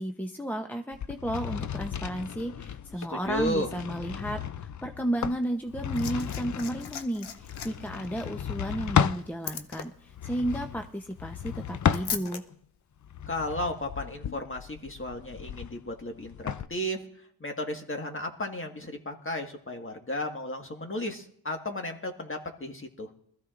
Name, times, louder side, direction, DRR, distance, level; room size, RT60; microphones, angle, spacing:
voice 1, 0.0-12.4, right 1 dB, 5° left, 4 dB, 0.8 m, -33 dB
sound 1, 0.9-9.3 10.1-12.5 13.0-16.7, left 8 dB, 45° left, 0.5 m, -33 dB
voice 2, 3.0-3.7 13.3-17.0 17.4-23.1, left 1 dB, 30° left, 3 dB, 1.7 m, -34 dB
Liquid, 5.5-12.4 13.5-13.6, left 7 dB, 80° left, 0.9 m, -41 dB
21.0 x 14.0 x 2.5 m, 0.66 s
cardioid pair, 50°, 40 cm